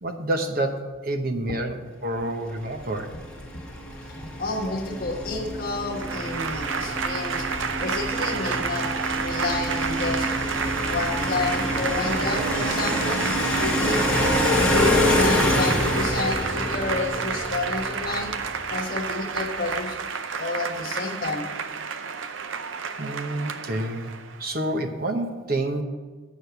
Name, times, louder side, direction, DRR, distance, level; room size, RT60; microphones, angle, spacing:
voice 1, 0.0-3.1 23.0-24.1 24.4-25.8, right 1 dB, 45° right, 4 dB, 0.9 m, -28 dB
sound 1, 2.6-18.8, left 1 dB, 5° left, 1.2 m, -27 dB
voice 2, 4.1-8.9 9.2-10.3 10.9-13.2 13.6-14.0 14.6-20.0 20.4-21.5, left 2 dB, 45° left, 2 dB, 1.3 m, -30 dB
Applause / Crowd, 5.9-24.5, right 6 dB, 75° right, 0.5 m, -30 dB
8.4 x 6.4 x 6.9 m, 1.3 s
head